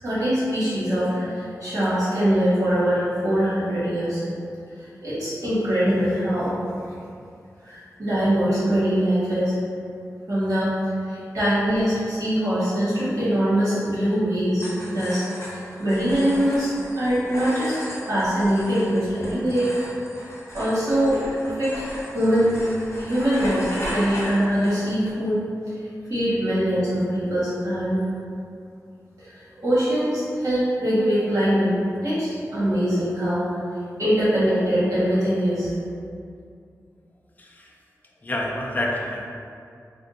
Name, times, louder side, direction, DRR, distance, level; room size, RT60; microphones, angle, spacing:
voice 1, 0.0-4.2 5.0-6.5 7.6-9.5 10.3-10.7 11.1-17.8 18.1-19.8 20.5-22.5 23.0-25.4 26.1-28.0 29.2-31.7 32.0-33.5 34.0-35.7, equal, 65° right, -11 dB, 1.5 m, -23 dB
sound 1, 14.5-25.1, equal, 45° left, 0.8 m, -36 dB
voice 2, 37.4-37.7 38.2-39.3, left 1 dB, 25° left, -1 dB, 0.4 m, -28 dB
3.5 x 2.3 x 2.6 m, 2.4 s
wide cardioid pair, 70°, 6 cm